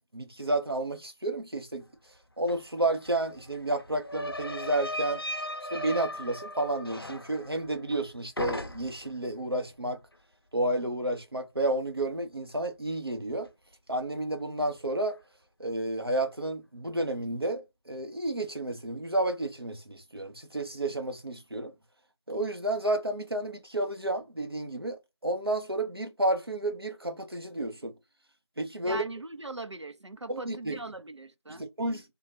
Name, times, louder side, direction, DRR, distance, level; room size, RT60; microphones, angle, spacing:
voice 1, 0.1-1.8 2.4-5.2 5.7-10.0 10.5-13.5 13.9-15.2 15.6-21.7 22.3-27.9 28.6-29.0 30.3-30.8 31.5-32.0, right 1 dB, 55° right, 1.0 m, -31 dB
sound 1, 2.5-2.6 2.8-8.1 8.4-9.1, equal, 55° left, 0.6 m, -37 dB
voice 2, 28.8-31.7, right 2 dB, 70° right, 0.7 m, -40 dB
3.6 x 2.3 x 4.4 m
figure-of-eight pair, 180°, 15 cm